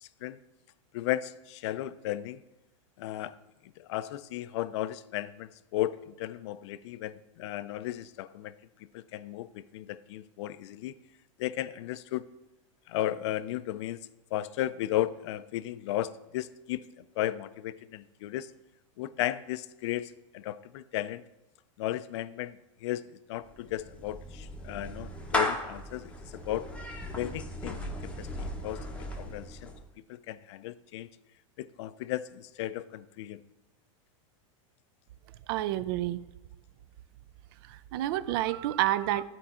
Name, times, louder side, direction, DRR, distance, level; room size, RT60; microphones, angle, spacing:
voice 1, 0.0-0.4 0.9-2.4 3.0-3.4 3.8-8.5 8.9-10.9 11.4-12.2 12.9-14.0 14.3-16.8 17.2-18.5 19.0-21.2 21.8-26.7 27.1-28.8 29.2-29.7 30.1-31.1 31.6-33.4, left 14 dB, 55° left, 15 dB, 0.4 m, -35 dB
Clapping / Meow, 23.4-29.9, left 1 dB, 5° left, 0.7 m, -36 dB
voice 2, 35.5-36.2 37.7-39.2, right 14 dB, 45° right, 16 dB, 0.4 m, -29 dB
11.0 x 4.6 x 4.3 m, 1.0 s
supercardioid pair, 155°, 17 cm